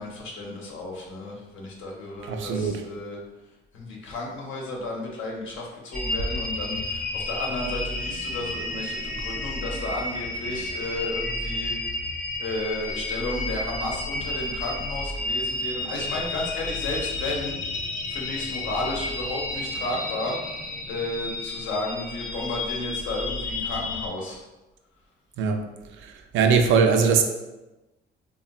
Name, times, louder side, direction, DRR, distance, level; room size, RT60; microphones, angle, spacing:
voice 1, 0.0-3.2 3.7-12.0 12.4-24.4, left 2 dB, 75° left, -2 dB, 0.8 m, -33 dB
voice 2, 2.2-2.8 25.4-25.6 26.0-27.2, right 5 dB, 75° right, 5 dB, 0.4 m, -21 dB
sound 1, 5.9-24.1, left 2 dB, 45° left, 0.8 m, -31 dB
3.5 x 2.2 x 2.3 m, 1.0 s
cardioid pair, 90°, 20 cm